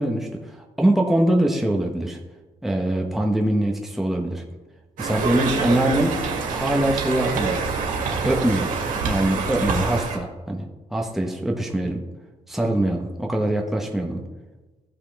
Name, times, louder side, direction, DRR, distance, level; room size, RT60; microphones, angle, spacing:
voice 1, 0.0-2.2 2.6-4.4 5.0-6.2 6.5-7.6 8.1-8.7 9.0-12.0 12.5-14.2, right 1 dB, ahead, 0 dB, 1.1 m, -23 dB
Conversation, 5.0-10.2, right 4 dB, 80° right, 2.0 m, -26 dB
14.5 x 5.7 x 3.4 m, 1.2 s
cardioid pair, 115°, 14 cm